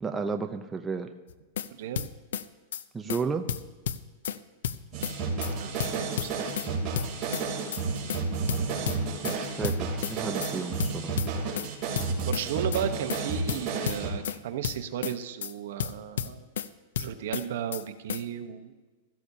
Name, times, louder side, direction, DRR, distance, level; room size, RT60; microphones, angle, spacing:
voice 1, 0.0-1.1 2.9-3.5 9.2-11.2, right 5 dB, 10° right, 5 dB, 0.6 m, -32 dB
sound 1, 1.3-1.7 2.0-2.4 2.7-2.8 3.1-3.2 3.5-4.4 4.6-5.1 5.4-5.5 5.8-6.7 7.0-7.4 7.7-7.8 8.1-8.2 8.5-9.4 9.6-10.1 10.4-10.5 10.8-11.7 12.0-12.4 12.7-12.8 13.1-13.2 13.5-14.4 14.6-15.1 15.4-15.5 15.8-16.7 17.0-17.4 17.7-17.8 18.1-18.2, left 9 dB, 85° left, 0.5 m, -32 dB
voice 2, 1.7-2.1 5.6-6.5 12.2-16.5 17.0-18.7, right 9 dB, 70° right, 9 dB, 1.0 m, -34 dB
sound 2, 4.9-14.1, right 4 dB, 35° right, 3.1 m, -32 dB
16.5 x 13.5 x 2.8 m, 1.3 s
supercardioid pair, 150°, 0 cm